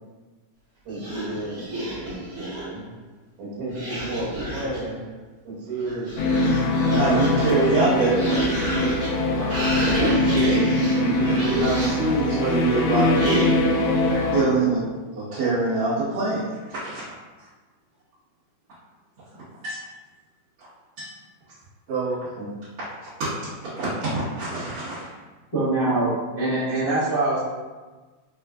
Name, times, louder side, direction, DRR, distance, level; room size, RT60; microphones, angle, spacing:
sound 1, 0.9-2.8 3.7-4.9 5.6-12.1 13.1-13.8, right 1 dB, 50° right, 1.2 m, -30 dB
voice 1, 0.9-2.8 3.4-5.0 5.4-6.2 6.9-7.5 9.4-9.5 10.0-11.3 12.9-13.0 14.0-14.7 22.4-22.5, right 2 dB, 85° right, -6 dB, 2.7 m, -33 dB
sound 2, 6.2-14.4, left 1 dB, 90° left, 2.1 m, -22 dB
voice 2, 7.0-8.7 11.2-13.1 14.3-14.8 15.1-16.4 16.7-17.0 19.6-19.8 21.0-21.1 21.9-22.2 23.4-25.1, right 2 dB, 65° right, -17 dB, 2.6 m, -24 dB
voice 3, 25.5-27.4, right 2 dB, 60° left, -14 dB, 0.5 m, -23 dB
5.9 x 2.4 x 2.3 m, 1.3 s
omnidirectional pair, 3.6 m